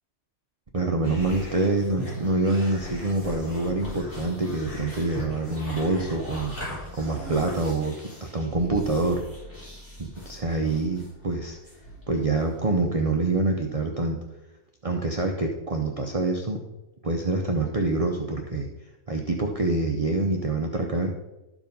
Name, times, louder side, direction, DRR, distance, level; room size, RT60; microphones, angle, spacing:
voice 1, 0.7-9.2 10.0-11.6 12.1-14.2 14.8-16.6 17.0-18.7 19.1-21.1, right 2 dB, 40° right, 2 dB, 0.5 m, -26 dB
sound 1, 1.0-12.8, left 1 dB, 45° left, 4.5 m, -40 dB
12.5 x 4.8 x 5.3 m, 1.0 s
omnidirectional pair, 1.6 m